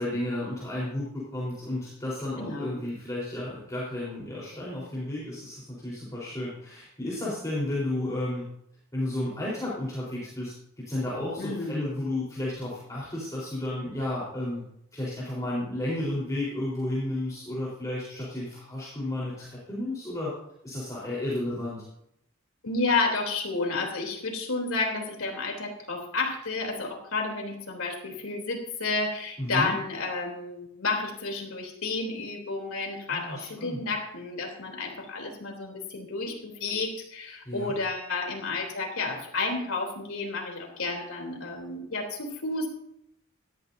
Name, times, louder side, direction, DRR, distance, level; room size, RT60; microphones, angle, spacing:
voice 1, 0.0-8.4 8.9-14.6 14.9-20.3 20.6-21.8 29.4-29.7 33.1-33.8 37.5-37.7, left 1 dB, 15° left, -7 dB, 4.1 m, -32 dB
voice 2, 2.4-2.8 11.4-11.8 22.6-42.7, left 3 dB, 85° left, 2 dB, 3.3 m, -31 dB
18.5 x 13.0 x 2.7 m, 0.76 s
head